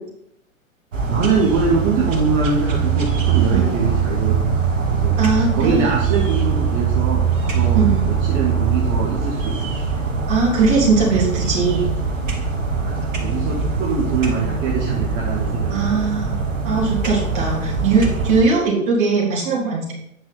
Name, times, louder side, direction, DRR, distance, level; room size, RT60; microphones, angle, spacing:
sound 1, 0.9-18.4, right 5 dB, 65° right, 1.8 m, -22 dB
voice 1, 1.1-7.8 8.1-9.7 12.7-16.0, right 5 dB, 20° right, -2 dB, 1.0 m, -23 dB
voice 2, 5.2-5.9 7.7-8.0 10.3-11.8 15.7-16.4 16.6-19.9, right 4 dB, 40° right, -4 dB, 3.5 m, -19 dB
9.0 x 6.1 x 4.2 m, 0.77 s
figure-of-eight pair, 115°, 41 cm